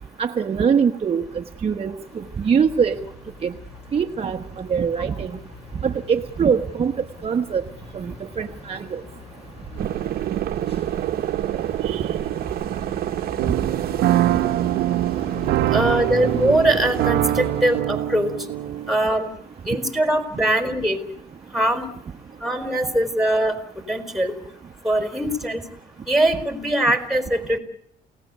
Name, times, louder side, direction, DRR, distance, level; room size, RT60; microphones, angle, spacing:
voice 1, 0.2-3.0 3.4-3.5 3.9-5.4 5.8-6.9 7.2-7.6 7.9-9.0 11.9-12.1 13.4-13.5, right 6 dB, 35° right, 5 dB, 1.3 m, -23 dB
sound 1, 2.0-17.8, left 3 dB, 35° left, 7.3 m, -41 dB
sound 2, 9.8-17.1, right 12 dB, 65° right, 1.2 m, -28 dB
sound 3, 13.4-19.0, right 14 dB, 80° right, 1.1 m, -24 dB
voice 2, 15.7-18.4 18.9-19.3 19.7-21.0 21.5-21.9 22.4-24.3 24.8-25.6 26.1-27.6, right 1 dB, ahead, 7 dB, 4.2 m, -22 dB
29.0 x 17.5 x 8.3 m, 0.68 s
cardioid pair, 110°, 17 cm